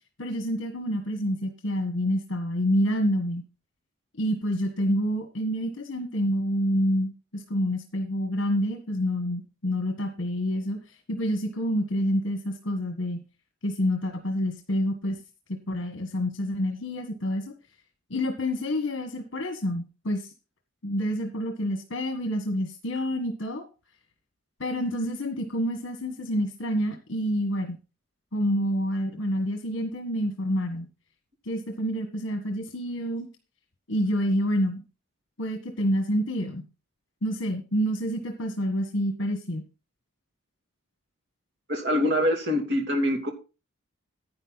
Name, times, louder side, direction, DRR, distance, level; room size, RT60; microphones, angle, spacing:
voice 1, 0.2-3.4 4.2-13.2 13.6-15.2 15.5-17.5 18.1-20.3 20.8-23.6 24.6-27.8 28.3-30.9 31.4-33.3 33.9-34.8 35.4-36.6 37.2-39.6, equal, 60° left, 5 dB, 1.5 m, -28 dB
voice 2, 41.7-43.3, left 1 dB, 55° right, 2 dB, 2.8 m, -24 dB
10.5 x 9.2 x 4.1 m, 0.31 s
head